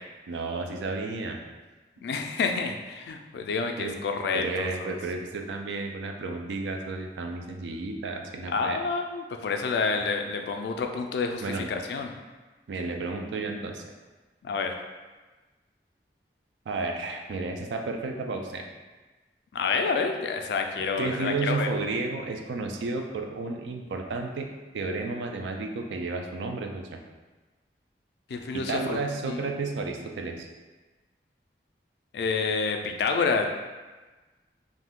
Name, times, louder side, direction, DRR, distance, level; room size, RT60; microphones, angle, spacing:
voice 1, 0.3-1.4 3.8-4.0 4.3-8.8 11.4-11.7 12.7-13.8 16.7-18.7 21.0-24.5 24.7-27.0 28.5-30.5, right 3 dB, 90° right, 3 dB, 0.4 m, -32 dB
voice 2, 2.0-5.0 8.5-12.1 14.4-14.7 19.5-21.7 28.3-29.0 29.3-29.6 32.1-33.5, left 4 dB, 70° left, 4 dB, 0.3 m, -28 dB
2.5 x 2.2 x 3.5 m, 1.2 s
head